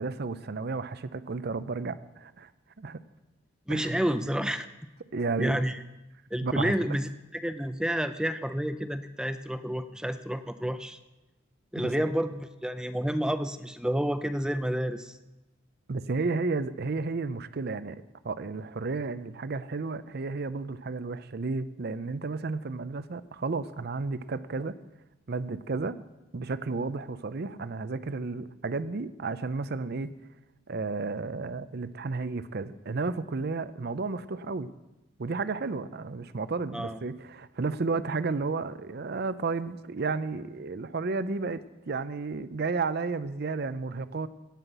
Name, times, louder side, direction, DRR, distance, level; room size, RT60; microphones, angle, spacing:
voice 1, 0.0-2.5 2.8-3.0 3.7-4.1 5.1-5.6 6.4-6.7 11.8-12.0 15.9-24.8 25.3-26.0 26.3-30.1 30.7-34.7 35.2-44.3, right 4 dB, 50° right, 14 dB, 0.5 m, -32 dB
voice 2, 3.7-4.7 5.4-5.8 6.3-11.0 11.7-15.2 36.7-37.0, equal, 5° right, 10 dB, 0.4 m, -30 dB
17.5 x 5.8 x 8.0 m, 1.0 s
head